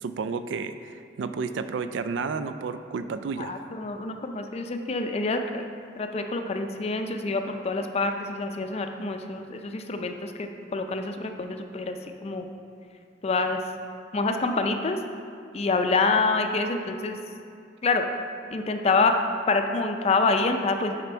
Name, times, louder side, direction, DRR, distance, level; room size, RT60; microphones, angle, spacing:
voice 1, 0.0-3.5, right 5 dB, 75° right, 11 dB, 0.3 m, -31 dB
voice 2, 3.4-5.6 6.0-12.5 13.2-13.6 14.1-15.0 15.5-17.2 17.8-18.1 18.5-19.2 19.5-21.0, left 3 dB, 35° left, 5 dB, 0.4 m, -26 dB
6.8 x 5.0 x 4.4 m, 2.3 s
head